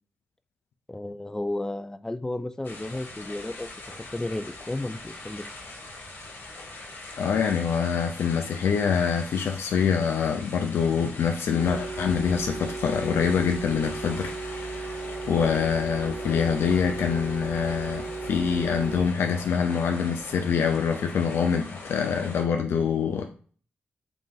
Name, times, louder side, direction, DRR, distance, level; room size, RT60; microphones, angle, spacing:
voice 1, 0.9-3.7 4.1-5.4, left 1 dB, 15° left, 0.3 m, -33 dB
sound 1, 2.6-22.4, left 2 dB, 65° left, 1.2 m, -42 dB
voice 2, 7.2-14.9 15.3-23.3, left 6 dB, 80° left, 0.5 m, -25 dB
sound 2, 11.6-19.1, right 3 dB, 25° right, 0.9 m, -35 dB
3.9 x 2.5 x 3.8 m
cardioid pair, 95°, 4 cm